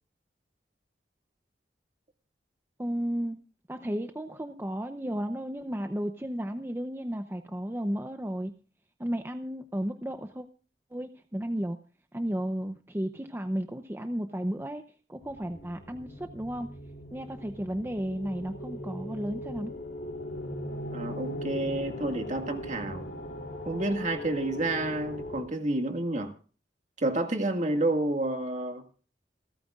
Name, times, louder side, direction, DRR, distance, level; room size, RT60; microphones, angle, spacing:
voice 1, 2.8-3.4 3.7-8.5 9.0-10.5 10.9-11.8 12.1-14.8 15.1-16.8 17.1-19.8, equal, 15° right, 0.7 m, -33 dB
sound 1, 15.2-25.4, left 1 dB, 80° left, 3.1 m, -39 dB
voice 2, 20.9-23.1 23.7-26.3 27.0-28.8, right 2 dB, 45° right, 2.0 m, -29 dB
28.0 x 9.3 x 2.4 m
head